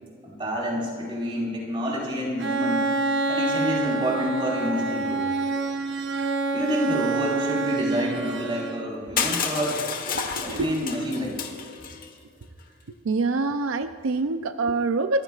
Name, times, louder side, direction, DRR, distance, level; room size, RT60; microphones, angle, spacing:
voice 1, 0.2-2.9 3.3-5.2 6.5-9.9 10.4-11.4, equal, 25° right, -3 dB, 4.7 m, -28 dB
Bowed string instrument, 2.4-9.1, right 3 dB, 55° right, 1.0 m, -27 dB
Crushing, 9.2-12.1, left 6 dB, 45° left, 1.3 m, -30 dB
voice 2, 10.1-10.7 13.0-15.2, right 3 dB, 80° right, 9 dB, 0.5 m, -26 dB
29.0 x 15.5 x 2.5 m, 2.5 s
head